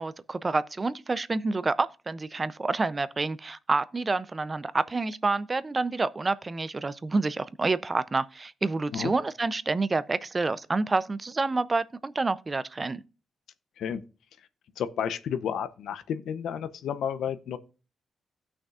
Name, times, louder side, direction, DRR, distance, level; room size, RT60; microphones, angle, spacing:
voice 1, 0.0-13.0, right 3 dB, 25° right, 0.4 m, -28 dB
voice 2, 14.8-17.6, left 8 dB, 90° left, 0.6 m, -31 dB
16.5 x 6.1 x 2.4 m
cardioid pair, 115°, 0 cm